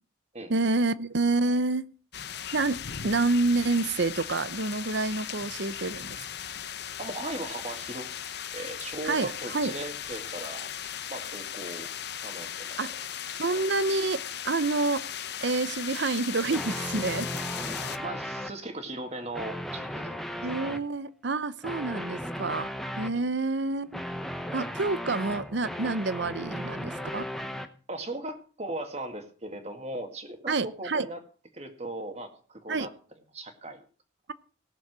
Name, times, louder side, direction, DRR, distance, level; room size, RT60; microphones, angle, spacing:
voice 1, 0.5-1.9 2.5-6.2 9.0-9.8 12.8-12.9 13.4-15.0 15.4-17.3 20.4-22.7 23.0-24.0 24.5-27.3 30.5-31.1 32.7-32.9, right 3 dB, 60° right, 15 dB, 0.7 m, -28 dB
sound 1, 2.1-18.0, left 9 dB, 55° left, 0.8 m, -37 dB
voice 2, 7.0-8.1 8.5-10.7 11.1-11.9 12.2-12.8 18.0-20.2 20.6-20.7 23.1-23.2 27.9-31.2 31.5-32.9 33.3-33.8, right 1 dB, 35° right, 6 dB, 2.0 m, -38 dB
sound 2, 16.5-18.5 19.2-20.8 21.6-23.2 23.9-27.7, equal, ahead, 0.9 m, -36 dB
17.5 x 7.2 x 6.1 m, 0.39 s
head